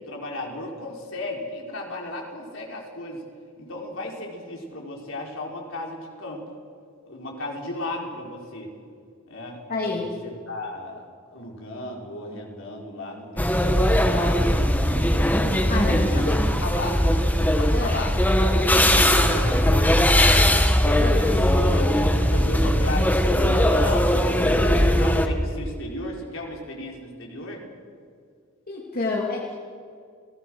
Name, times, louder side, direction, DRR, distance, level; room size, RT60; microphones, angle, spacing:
voice 1, 0.1-3.2 3.6-6.4 7.1-8.7 9.3-14.4 15.8-16.2 16.6-17.1 17.6-18.2 19.3-19.7 20.8-27.6, left 1 dB, 70° left, -1 dB, 4.8 m, -34 dB
voice 2, 9.7-10.1 15.7-16.4 17.7-18.1 19.0-19.9 21.0-21.2 28.7-29.6, left 3 dB, 45° left, -2 dB, 2.8 m, -29 dB
sound 1, 13.4-25.3, equal, 10° left, 1.5 m, -20 dB
29.5 x 18.5 x 6.4 m, 2.1 s
head